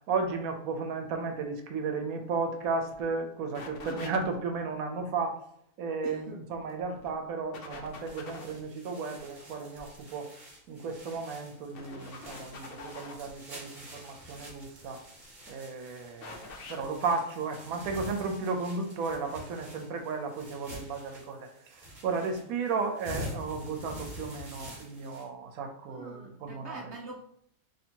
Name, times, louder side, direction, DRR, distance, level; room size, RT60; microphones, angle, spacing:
voice 1, 0.1-5.4 5.8-10.3 10.7-15.0 15.5-26.8, right 4 dB, 85° right, 4 dB, 1.1 m, -34 dB
sound 1, 2.6-2.7 2.9-3.1 3.5-4.4 6.5-7.1 7.5-8.6 10.8-11.1 11.7-13.3 15.0-15.5 16.2-16.8, left 4 dB, 60° left, 0.6 m, -45 dB
voice 2, 6.0-6.4 25.9-27.2, right 2 dB, 65° right, 0 dB, 0.7 m, -44 dB
sound 2, 7.9-25.3, equal, 35° right, 1.1 m, -47 dB
4.3 x 2.8 x 2.7 m, 0.67 s
omnidirectional pair, 1.5 m